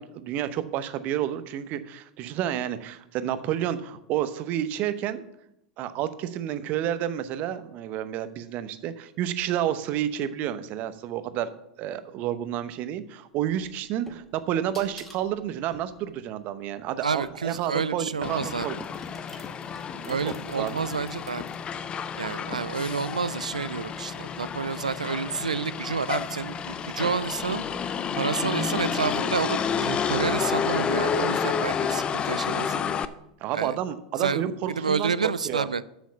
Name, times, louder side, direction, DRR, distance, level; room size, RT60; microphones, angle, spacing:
voice 1, 0.0-5.2 5.8-11.5 11.8-18.7 19.9-20.2 20.6-20.8 33.4-35.7, right 11 dB, 45° right, 12 dB, 0.8 m, -30 dB
sound 1, 13.4-17.8 18.5-21.6, left 1 dB, 10° left, 2.1 m, -50 dB
voice 2, 17.0-18.7 20.1-21.4 22.2-27.6 28.2-32.9 33.5-33.8 34.2-35.8, right 5 dB, 85° right, 17 dB, 0.4 m, -29 dB
Motor vehicle (road), 18.2-33.1, left 7 dB, 25° left, 0.5 m, -30 dB
7.9 x 6.3 x 7.1 m, 0.81 s
hypercardioid pair, 90°, 4 cm